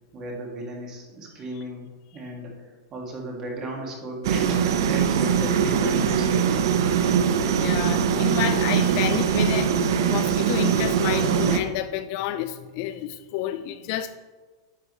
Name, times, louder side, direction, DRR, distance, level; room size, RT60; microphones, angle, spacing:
voice 1, 0.1-2.5 2.9-6.9, right 2 dB, 25° right, 0 dB, 1.8 m, -35 dB
sound 1, 4.2-11.6, right 7 dB, 70° right, 0.7 m, -22 dB
voice 2, 7.4-9.8 10.1-14.2, left 12 dB, 45° left, 12 dB, 0.4 m, -30 dB
10.5 x 7.3 x 3.1 m, 1.4 s
supercardioid pair, 155°, 2 cm